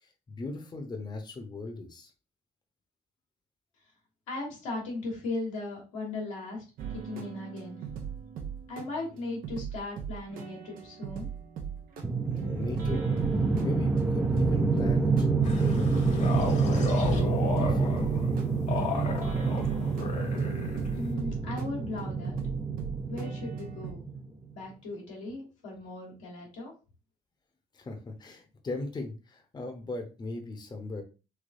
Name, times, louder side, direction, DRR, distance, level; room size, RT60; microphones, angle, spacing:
voice 1, 0.0-2.1 12.3-13.1 13.6-15.9 16.6-16.9 17.1-18.0 27.7-31.0, left 2 dB, 25° left, 3 dB, 0.9 m, -38 dB
voice 2, 4.3-6.6 6.9-7.8 8.7-11.3 20.9-22.4 23.1-24.0 24.5-26.7, left 2 dB, 85° left, -2 dB, 1.5 m, -37 dB
sound 1, 6.8-23.9, right 7 dB, 65° right, 0.8 m, -40 dB
sound 2, 12.0-24.3, right 4 dB, 10° right, 0.5 m, -28 dB
sound 3, 15.4-21.1, left 4 dB, 50° left, 1.1 m, -34 dB
3.4 x 3.1 x 2.6 m, 0.32 s
hypercardioid pair, 55°, 16 cm